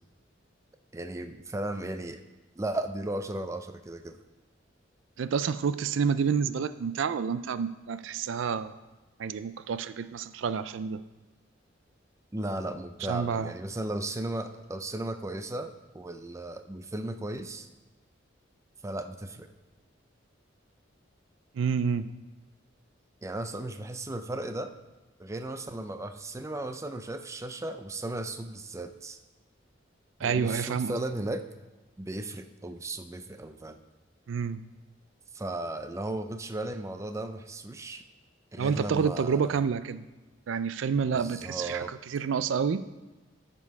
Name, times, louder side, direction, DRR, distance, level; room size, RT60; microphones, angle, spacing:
voice 1, 0.9-2.2 2.6-4.2 12.3-17.7 18.8-19.5 23.2-24.7 25.2-29.2 30.2-31.4 32.0-33.8 35.3-38.0 38.5-39.6 41.1-41.9, right 1 dB, 15° right, 8 dB, 0.4 m, -35 dB
voice 2, 5.2-8.8 9.2-11.0 13.1-13.5 21.5-22.1 30.2-31.0 34.3-34.6 38.6-40.0 40.5-42.8, right 6 dB, 80° right, 14 dB, 0.4 m, -29 dB
13.5 x 5.3 x 4.7 m, 1.1 s
head